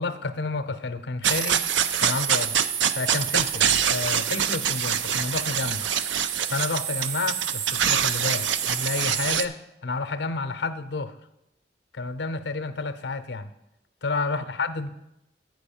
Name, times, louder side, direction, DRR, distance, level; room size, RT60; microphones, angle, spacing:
voice 1, 0.0-1.6 2.0-2.6 2.9-5.9 6.5-11.2 11.9-13.5 14.0-14.9, left 3 dB, 70° left, 11 dB, 0.6 m, -30 dB
sound 1, 1.2-9.5, right 8 dB, 90° right, 0.4 m, -25 dB
8.0 x 4.9 x 7.0 m, 0.87 s
head